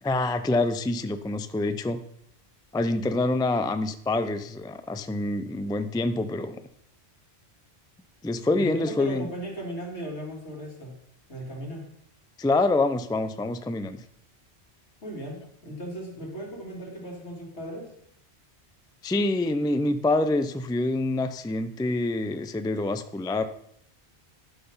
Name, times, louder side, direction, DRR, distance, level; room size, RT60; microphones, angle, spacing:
voice 1, 0.0-2.0 2.7-6.6 8.2-9.3 12.4-14.0 19.0-23.4, left 2 dB, 5° left, 10 dB, 0.3 m, -26 dB
voice 2, 8.5-10.9 11.3-11.8 15.0-17.9, equal, 80° left, -2 dB, 3.3 m, -37 dB
11.5 x 5.9 x 5.6 m, 0.71 s
omnidirectional pair, 1.1 m